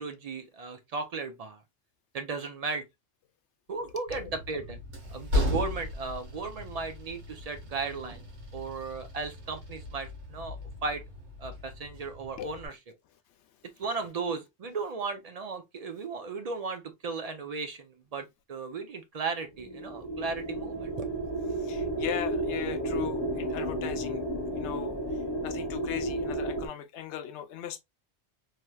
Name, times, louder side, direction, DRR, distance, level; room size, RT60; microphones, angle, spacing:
voice 1, 0.0-1.6 2.1-2.8 3.7-4.8 5.1-8.2 8.5-10.6 10.8-11.0 11.4-12.8 13.8-21.1, right 4 dB, 55° right, 0.4 m, -35 dB
Train, 4.1-12.7, left 1 dB, 80° right, 1.4 m, -36 dB
sound 1, 19.6-26.7, right 1 dB, 35° left, 0.4 m, -32 dB
voice 2, 21.6-24.2 24.5-25.0 25.4-27.8, left 10 dB, 80° left, 0.9 m, -38 dB
3.2 x 2.9 x 2.2 m
omnidirectional pair, 1.2 m